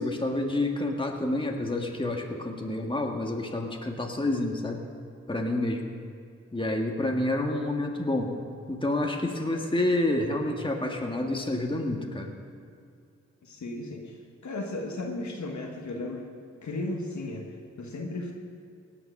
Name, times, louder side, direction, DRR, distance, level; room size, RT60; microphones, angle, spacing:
voice 1, 0.0-4.8 5.3-5.8 6.5-8.3 8.7-12.3, left 1 dB, 15° left, 2 dB, 1.7 m, -28 dB
voice 2, 13.4-14.0 14.4-16.3 16.6-17.4 17.8-18.3, left 2 dB, 70° left, 1 dB, 1.5 m, -34 dB
18.0 x 6.0 x 6.5 m, 2.4 s
cardioid pair, 45°, 30 cm